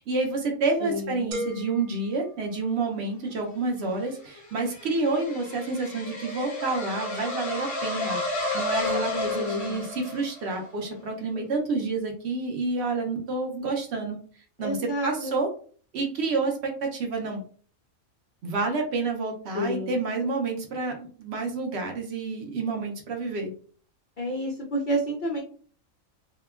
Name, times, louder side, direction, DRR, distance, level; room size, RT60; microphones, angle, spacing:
voice 1, 0.0-14.2 14.6-15.5 15.9-17.4 18.4-23.5, right 3 dB, 65° right, 2 dB, 0.7 m, -29 dB
voice 2, 0.8-1.3 8.8-9.9 14.6-15.3 19.5-20.0 24.2-25.4, right 1 dB, 85° left, 0 dB, 0.4 m, -30 dB
sound 1, 1.3-3.2, equal, 85° right, 1.1 m, -38 dB
sound 2, 3.6-10.7, left 2 dB, 50° left, 0.7 m, -32 dB
2.7 x 2.2 x 2.2 m, 0.44 s
omnidirectional pair, 1.4 m